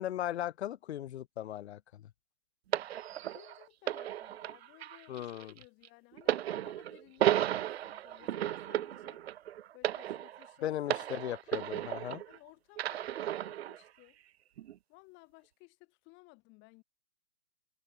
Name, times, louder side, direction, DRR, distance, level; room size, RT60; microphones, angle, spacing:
voice 1, 0.0-2.0 5.1-5.5 10.6-12.2, left 12 dB, 60° left, 0.9 m, -37 dB
sound 1, 2.7-12.4 12.8-13.8 14.6-14.7, right 12 dB, 55° right, 1.0 m, -34 dB
voice 2, 3.3-9.2 9.7-11.3 12.3-14.2 14.9-16.8, left 25 dB, 30° left, 7.9 m, -59 dB
hypercardioid pair, 140°, 38 cm